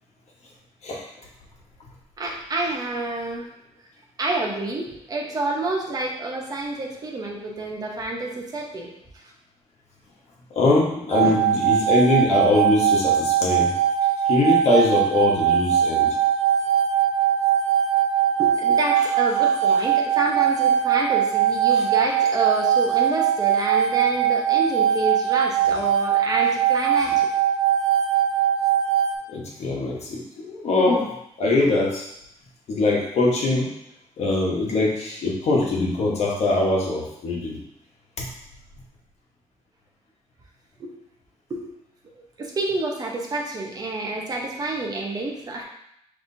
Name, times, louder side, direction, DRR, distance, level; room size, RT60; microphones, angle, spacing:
voice 1, 2.2-3.5 4.2-8.9 18.4-27.3 40.8-40.9 41.5-41.8 42.4-45.6, right 2 dB, 35° right, 0 dB, 0.9 m, -28 dB
voice 2, 10.5-13.7 14.3-16.2 21.7-21.8 27.0-27.2 29.3-31.1 31.4-32.1 32.7-33.7 34.2-37.6 38.2-38.3, left 2 dB, 75° left, -3 dB, 1.2 m, -22 dB
sound 1, 11.1-29.2, right 9 dB, 70° right, 0.4 m, -21 dB
5.9 x 3.2 x 2.7 m, 0.77 s
wide cardioid pair, 150°, 11 cm